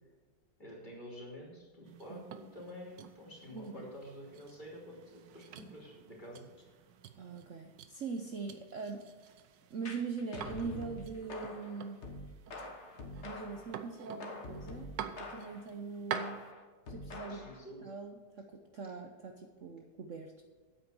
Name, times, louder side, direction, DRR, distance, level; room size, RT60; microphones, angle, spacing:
voice 1, 0.6-6.8 17.2-17.9, equal, 25° left, -3 dB, 3.3 m, -49 dB
sound 1, 1.9-16.5, right 8 dB, 85° right, 1.5 m, -48 dB
voice 2, 3.5-3.9 7.2-9.1 9.7-12.0 13.2-14.9 15.2-16.4 16.9-17.4 17.8-20.4, right 5 dB, 55° right, 4 dB, 1.1 m, -42 dB
sound 2, 9.8-13.7 14.2-15.7 16.1-17.6, left 2 dB, 40° left, 1.5 m, -46 dB
9.1 x 8.4 x 6.9 m, 1.4 s
omnidirectional pair, 1.9 m